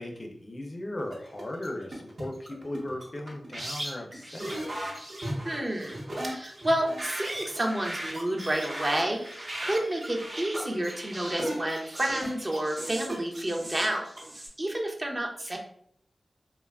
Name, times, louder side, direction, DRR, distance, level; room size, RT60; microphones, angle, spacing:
voice 1, 0.0-4.7, left 1 dB, 40° left, 2 dB, 0.4 m, -37 dB
sound 1, 1.0-14.5, right 1 dB, 60° right, 0.9 m, -37 dB
voice 2, 5.4-14.1 14.3-15.6, right 1 dB, 35° right, 1 dB, 0.5 m, -30 dB
2.8 x 2.2 x 2.3 m, 0.64 s
wide cardioid pair, 70°, 0 cm